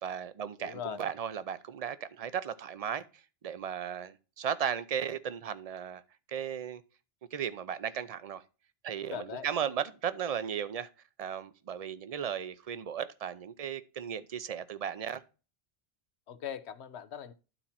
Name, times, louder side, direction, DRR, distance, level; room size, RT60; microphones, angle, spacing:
voice 1, 0.0-6.0 6.3-6.8 7.3-8.4 8.8-10.9 11.2-15.2, right 8 dB, 45° right, 0.6 m, -36 dB
voice 2, 0.6-1.0 9.1-9.5 16.3-17.3, left 9 dB, 85° left, 1.0 m, -40 dB
12.0 x 4.3 x 4.2 m
omnidirectional pair, 1.1 m